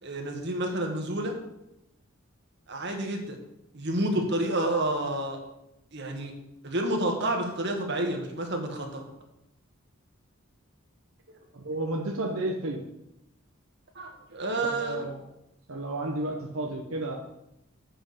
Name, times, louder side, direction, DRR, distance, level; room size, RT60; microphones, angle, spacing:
voice 1, 0.0-1.3 2.7-3.4 3.7-5.4 5.9-6.3 6.6-9.0 13.9-15.1, right 1 dB, 55° right, 3 dB, 1.6 m, -29 dB
voice 2, 11.5-12.8 14.6-15.2 15.7-17.2, right 2 dB, 80° right, 1 dB, 1.0 m, -32 dB
7.7 x 6.2 x 6.6 m, 0.85 s
head